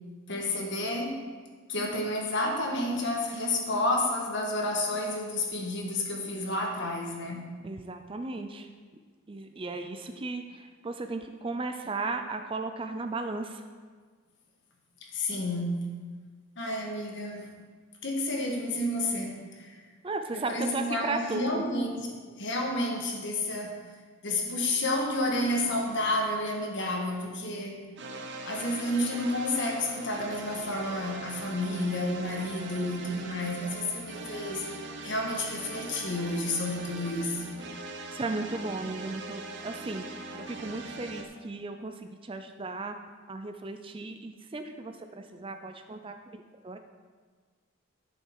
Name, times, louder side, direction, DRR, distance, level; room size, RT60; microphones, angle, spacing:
voice 1, 0.3-1.2 1.7-7.5 15.1-15.7 16.6-17.5 18.0-19.7 20.3-22.0 22.4-23.8 24.2-27.8 28.4-34.7 35.0-37.4, left 1 dB, 55° left, 1 dB, 1.6 m, -30 dB
voice 2, 7.6-8.7 9.3-13.6 20.0-21.6 38.1-43.0 43.3-46.8, right 3 dB, 25° right, 7 dB, 0.4 m, -36 dB
sound 1, 25.3-27.1 28.0-41.2, right 3 dB, 50° right, 0.8 m, -41 dB
11.5 x 6.7 x 4.7 m, 1.5 s
head